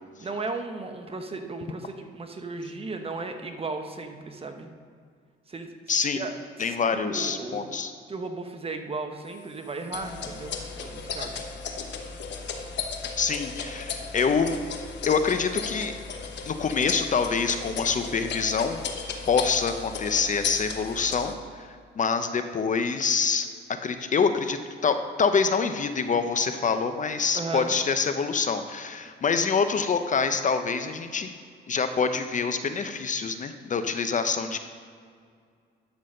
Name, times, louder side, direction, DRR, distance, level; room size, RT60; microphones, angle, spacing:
voice 1, 0.2-4.7 5.5-5.7 6.1-6.3 6.6-7.7 8.1-11.5 27.3-27.8, right 3 dB, 30° right, 5 dB, 1.0 m, -35 dB
voice 2, 5.9-6.3 6.6-7.9 13.2-14.6 15.1-15.9 16.5-18.8 19.3-21.7 22.0-31.3 31.7-34.6, left 5 dB, 40° left, 8 dB, 0.6 m, -26 dB
sound 1, 9.9-21.3, left 5 dB, 60° left, 1.0 m, -35 dB
11.5 x 4.1 x 6.4 m, 2.1 s
cardioid pair, 90°, 20 cm